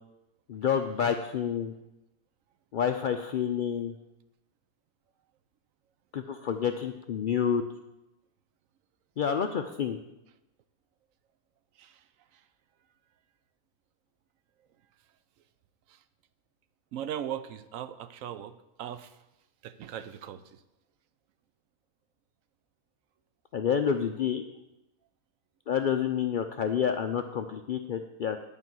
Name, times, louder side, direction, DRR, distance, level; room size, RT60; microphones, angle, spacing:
voice 1, 0.5-1.7 2.7-3.9 6.1-7.6 9.2-10.0 23.5-24.4 25.7-28.4, left 8 dB, 85° left, 6 dB, 0.4 m, -28 dB
voice 2, 16.9-19.2 19.6-20.6, right 10 dB, 75° right, 13 dB, 1.0 m, -39 dB
9.7 x 5.3 x 7.7 m, 0.95 s
omnidirectional pair, 1.5 m